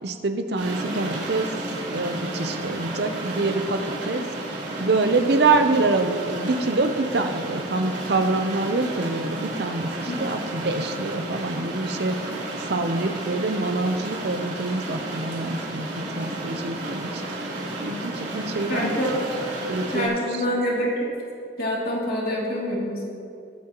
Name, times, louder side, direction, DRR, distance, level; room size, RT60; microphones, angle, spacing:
voice 1, 0.0-1.5 1.9-4.2 4.5-12.2 12.7-17.5 17.8-18.9 19.7-20.1, right 3 dB, 60° right, 7 dB, 0.7 m, -25 dB
sound 1, 0.6-20.1, right 2 dB, 75° right, 3.3 m, -32 dB
voice 2, 18.7-19.2 19.9-21.1 21.6-23.1, equal, 50° left, -4 dB, 2.8 m, -26 dB
21.5 x 8.6 x 3.0 m, 2.4 s
head